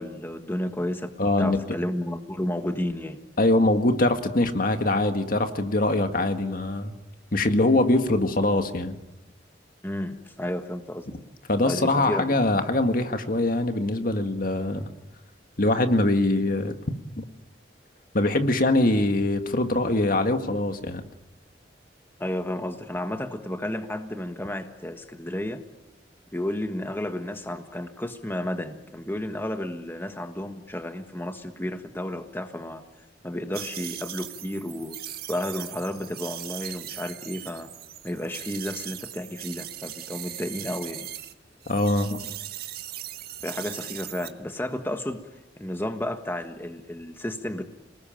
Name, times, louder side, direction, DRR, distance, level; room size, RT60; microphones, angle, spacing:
voice 1, 0.0-1.1 1.4-3.2 9.8-11.1 11.6-12.5 22.2-25.6 26.3-32.8 33.2-35.0 35.3-37.7 38.0-41.1 43.4-45.2 45.6-47.6, left 1 dB, 15° left, 6 dB, 1.4 m, -32 dB
voice 2, 1.2-1.6 3.4-6.9 7.3-9.0 11.5-14.9 15.6-16.7 17.2-17.3 18.1-21.0 41.7-42.2, left 2 dB, 50° left, 7 dB, 1.9 m, -23 dB
sound 1, 33.5-41.3 41.6-44.3, right 12 dB, 60° right, 1.6 m, -39 dB
28.0 x 20.0 x 9.0 m, 0.97 s
head